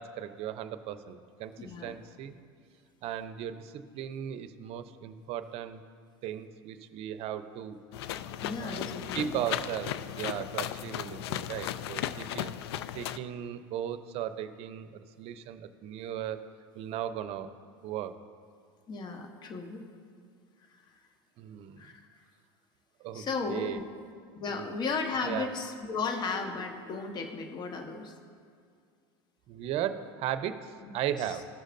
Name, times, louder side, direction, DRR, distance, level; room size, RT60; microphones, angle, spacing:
voice 1, 0.0-2.3 3.0-5.8 6.2-7.8 8.6-12.5 12.9-16.4 16.7-17.5 17.8-18.2 21.4-21.9 23.0-23.8 24.5-24.7 25.2-25.5 29.5-31.5, right 10 dB, 50° right, 11 dB, 0.6 m, -37 dB
voice 2, 1.6-1.9 8.4-9.3 18.9-19.8 21.8-22.0 23.1-23.7 24.3-28.1 30.8-30.9, left 4 dB, 35° left, 5 dB, 1.1 m, -35 dB
sound 1, 7.9-13.2, left 11 dB, 80° left, 0.4 m, -36 dB
16.0 x 6.3 x 2.6 m, 2.2 s
hypercardioid pair, 100°, 13 cm